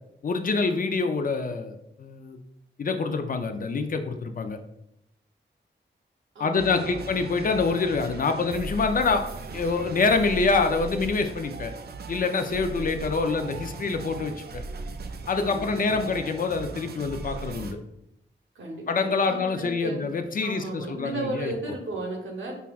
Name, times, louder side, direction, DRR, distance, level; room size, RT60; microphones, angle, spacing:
voice 1, 0.2-2.4 2.8-4.6 6.4-9.2 9.5-11.7 12.1-14.6 15.3-17.8 18.9-21.7, left 4 dB, 45° left, 6 dB, 0.4 m, -26 dB
voice 2, 6.3-7.1 15.4-16.2 18.5-20.0 20.4-22.5, right 2 dB, 80° right, 0 dB, 0.9 m, -35 dB
sound 1, 6.6-17.7, right 3 dB, 55° right, 0.4 m, -38 dB
5.4 x 2.3 x 2.3 m, 0.81 s
cardioid pair, 65°, 20 cm